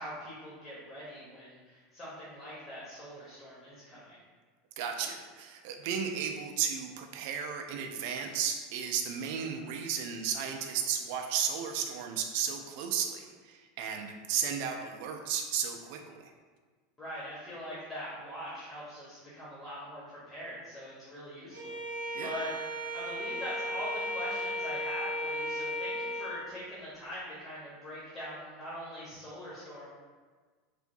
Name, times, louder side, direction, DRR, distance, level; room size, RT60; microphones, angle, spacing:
voice 1, 0.0-4.2 17.0-22.5 22.9-29.9, equal, 25° left, -9 dB, 0.9 m, -42 dB
voice 2, 4.8-16.3 22.1-22.3, right 7 dB, 55° right, 4 dB, 0.3 m, -34 dB
Bowed string instrument, 21.5-26.4, equal, 80° right, 0.7 m, -35 dB
3.3 x 2.5 x 2.6 m, 1.4 s
figure-of-eight pair, 80°, 0 cm